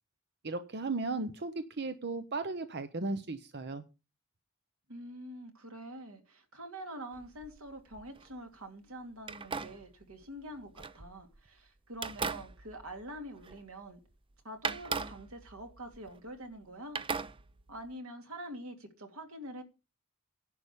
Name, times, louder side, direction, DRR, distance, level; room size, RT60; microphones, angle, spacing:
voice 1, 0.4-3.8, right 3 dB, 55° right, 0.9 m, -36 dB
voice 2, 4.9-14.0 14.4-17.0 17.7-19.6, right 1 dB, 85° right, 2.6 m, -45 dB
sound 1, 7.1-8.3 9.2-11.5 11.9-13.9 14.1-14.2 14.6-16.6 17.0-17.9, right 5 dB, 25° right, 0.6 m, -40 dB
11.0 x 5.0 x 8.4 m
head